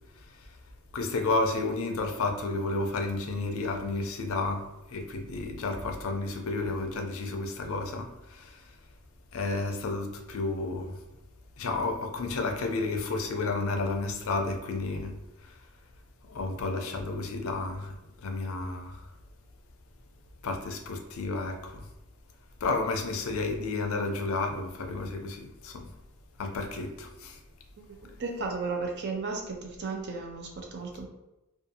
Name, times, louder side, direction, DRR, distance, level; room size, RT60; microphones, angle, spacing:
voice 1, 0.9-8.7 9.3-11.0 11.6-15.2 15.4-15.5 16.3-17.9 18.2-19.0 20.4-21.9 22.6-25.9 26.4-27.4, left 3 dB, 65° left, 4 dB, 0.4 m, -31 dB
voice 2, 27.9-31.1, right 4 dB, 50° right, 1 dB, 0.5 m, -34 dB
2.5 x 2.3 x 2.7 m, 0.95 s
head